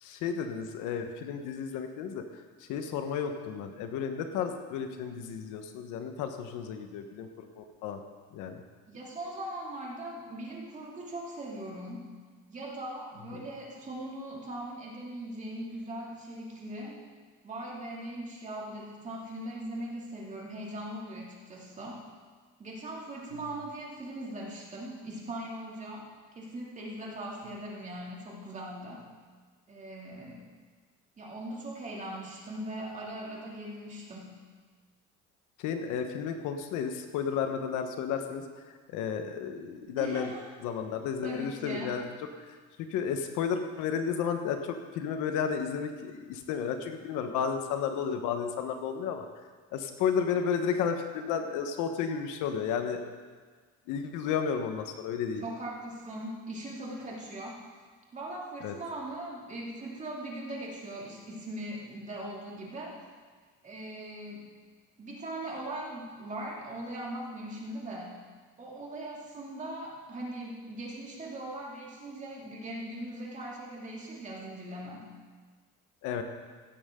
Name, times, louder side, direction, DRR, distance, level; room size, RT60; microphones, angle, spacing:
voice 1, 0.0-2.2 2.7-8.0 8.3-8.6 13.3-13.5 35.6-38.4 38.9-40.3 40.6-42.1 42.4-49.3 49.7-53.0 53.9-55.4 58.6-58.7 76.0-76.2, left 7 dB, 75° left, 6 dB, 1.3 m, -32 dB
voice 2, 8.9-12.1 12.5-17.0 17.4-22.0 22.6-26.1 26.3-29.0 29.7-30.4 31.2-34.4 40.0-40.4 41.2-41.9 55.4-57.6 58.1-63.0 63.6-64.5 65.0-68.2 68.6-75.1, right 1 dB, 25° right, -3 dB, 2.6 m, -40 dB
16.0 x 12.5 x 3.8 m, 1.5 s
cardioid pair, 170°, 31 cm